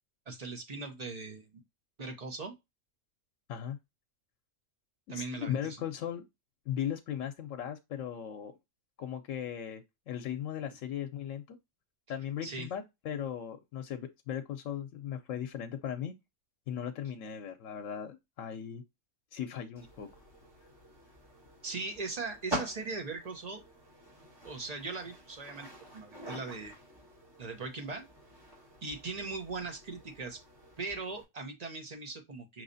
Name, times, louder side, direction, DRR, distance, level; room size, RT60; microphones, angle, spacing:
voice 1, 0.3-1.6 2.0-2.5 5.1-5.8 12.4-12.7 21.6-23.6 24.4-25.7 25.9-26.7 27.4-28.1 28.8-30.4 30.8-32.6, right 3 dB, 35° right, 0.9 m, -39 dB
voice 2, 5.1-6.2 6.7-8.5 9.0-11.6 12.1-16.1 16.7-18.8 19.3-20.1, left 9 dB, 85° left, 1.0 m, -37 dB
sound 1, 19.8-31.2, right 1 dB, 20° right, 2.2 m, -46 dB
5.5 x 3.1 x 2.6 m
omnidirectional pair, 1.3 m